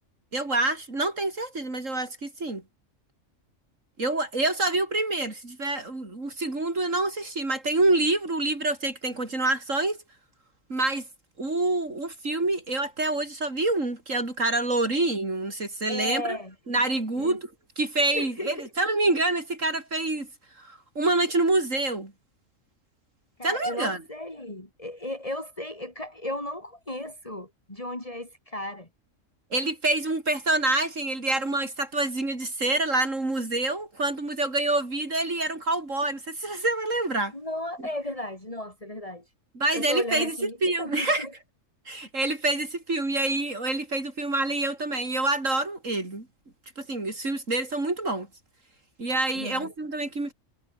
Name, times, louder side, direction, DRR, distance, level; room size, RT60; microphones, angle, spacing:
voice 1, 0.3-2.6 4.0-10.0 10.7-11.0 11.4-16.4 16.7-17.5 17.8-20.3 20.6-22.1 23.4-24.0 29.5-37.3 39.6-41.3 41.9-46.3 46.8-48.3 49.0-50.3, right 2 dB, 75° right, 5.1 m, -27 dB
voice 2, 15.9-16.5 17.2-17.4 18.1-18.7 23.4-28.9 37.3-39.2 39.7-41.3 49.3-49.7, left 1 dB, 25° left, 4.4 m, -35 dB
omnidirectional pair, 1.3 m